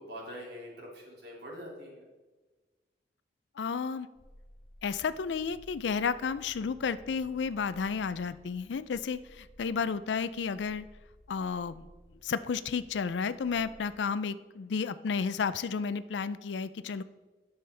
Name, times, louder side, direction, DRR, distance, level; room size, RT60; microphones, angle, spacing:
voice 1, 0.0-2.1, equal, 60° right, -2 dB, 2.7 m, -44 dB
voice 2, 3.6-4.1 4.8-10.9 11.3-11.9 12.2-17.0, left 5 dB, 75° left, 15 dB, 0.4 m, -32 dB
sound 1, 4.2-14.0, left 1 dB, 30° left, 0.6 m, -57 dB
11.0 x 7.0 x 3.4 m, 1.2 s
head